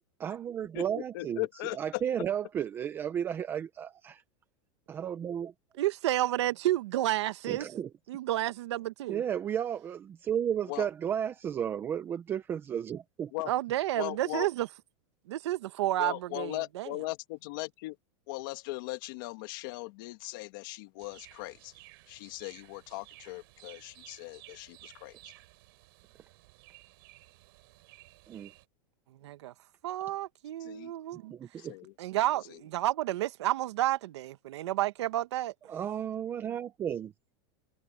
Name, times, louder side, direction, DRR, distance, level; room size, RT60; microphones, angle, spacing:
voice 1, 0.2-1.4 1.8-4.2 4.9-5.5 7.5-7.9 9.1-13.3 28.3-28.5 31.3-31.7 35.7-37.1, right 9 dB, 15° right, 0.6 m, -33 dB
voice 2, 0.7-2.0 10.7-10.9 13.3-13.5 14.0-14.5 16.0-18.0 18.3-21.7 22.1-25.3 30.6-30.9 31.6-31.9 32.5-32.6, left 21 dB, 45° left, 2.2 m, -39 dB
voice 3, 5.8-7.7 8.1-9.2 13.5-14.7 15.3-16.9 29.2-29.5 29.8-31.3 32.0-35.5, right 14 dB, 70° right, 1.3 m, -30 dB
sound 1, 21.0-28.7, right 21 dB, 55° right, 3.2 m, -56 dB
supercardioid pair, 175°, 15 cm